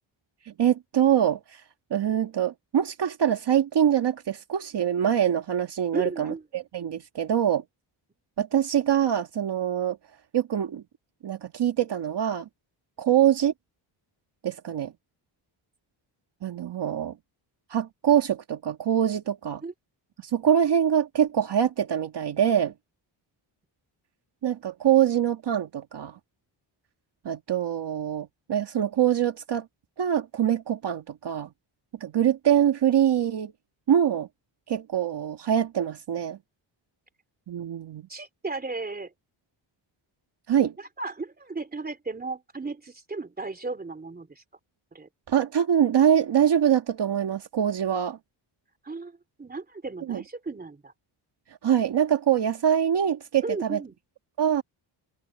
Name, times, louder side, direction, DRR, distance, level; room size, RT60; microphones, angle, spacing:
voice 1, 0.5-1.6 1.9-7.6 8.4-10.0 10.3-10.8 11.2-12.5 13.0-13.5 14.4-14.9 16.4-17.1 17.7-19.6 20.2-22.7 24.4-26.2 27.3-29.7 30.0-31.5 32.0-33.5 33.9-34.3 34.7-36.4 37.5-38.0 40.5-40.7 45.3-48.2 50.1-50.2 51.6-53.8 54.4-54.6, right 9 dB, 55° right, 1.8 m, -24 dB
voice 2, 5.9-6.4 19.6-19.7 38.1-39.1 40.8-44.4 44.9-45.1 48.8-50.9 53.4-53.9, right 3 dB, 20° right, 3.2 m, -35 dB
wide cardioid pair, 150°, 48 cm